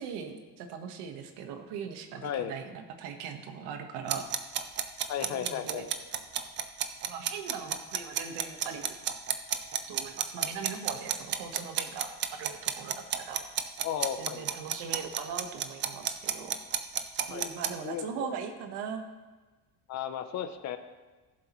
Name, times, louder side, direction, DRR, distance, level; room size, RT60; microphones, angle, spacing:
voice 1, 0.0-4.3 5.3-5.8 7.1-8.9 9.9-13.4 14.1-16.5 17.3-19.0, right 6 dB, 80° right, 5 dB, 1.4 m, -40 dB
voice 2, 2.2-2.6 5.1-5.9 13.8-14.4 17.3-17.5 17.8-18.4 19.9-20.8, left 9 dB, 40° left, 9 dB, 0.6 m, -34 dB
sound 1, 4.1-17.7, right 9 dB, 30° right, 0.4 m, -31 dB
17.0 x 7.5 x 3.1 m, 1.3 s
cardioid pair, 175°, 40 cm